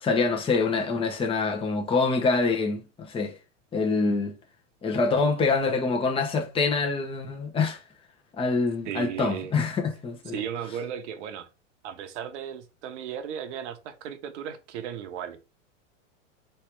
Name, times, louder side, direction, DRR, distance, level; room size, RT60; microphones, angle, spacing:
voice 1, 0.0-3.4 3.7-4.4 4.8-7.8 8.4-10.4, left 4 dB, 15° left, 0.9 m, -25 dB
voice 2, 8.9-9.5 10.3-11.5 11.8-15.5, right 9 dB, 65° right, 1.0 m, -35 dB
3.4 x 3.3 x 4.5 m
hypercardioid pair, 120°, 38 cm